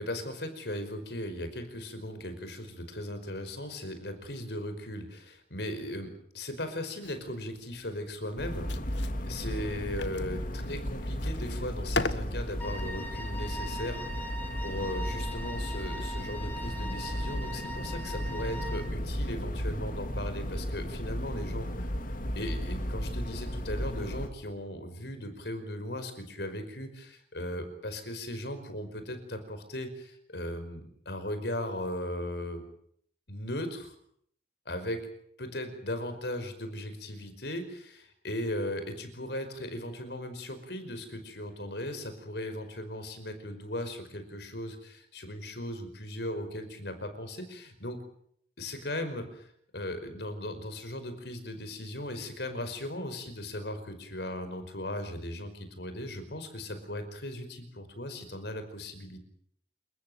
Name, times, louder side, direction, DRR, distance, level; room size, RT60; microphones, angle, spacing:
voice 1, 0.0-8.7 9.2-14.4 14.6-21.9 22.3-32.6 33.3-33.9 34.6-35.0 35.4-48.0 48.6-59.2, left 1 dB, 65° left, 9 dB, 5.2 m, -37 dB
sound 1, 7.0-13.4, left 3 dB, 85° left, 1.5 m, -40 dB
sound 2, 8.4-24.3, equal, 50° left, 2.6 m, -35 dB
Wind instrument woodwind instrument, 12.6-18.9, right 1 dB, 10° left, 3.2 m, -41 dB
29.0 x 15.0 x 9.4 m, 0.68 s
head